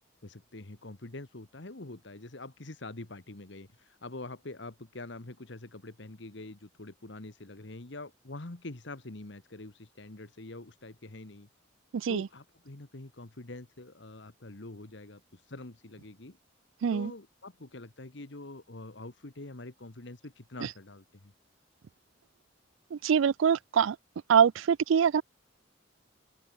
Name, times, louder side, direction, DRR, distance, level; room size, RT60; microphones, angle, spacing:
voice 1, 0.2-11.5 12.1-16.4 16.9-21.3, left 2 dB, 65° left, 1.5 m, -45 dB
voice 2, 11.9-12.3 16.8-17.1 20.6-20.7 22.9-24.0 24.3-25.2, right 7 dB, 80° right, 0.4 m, -24 dB
open air
head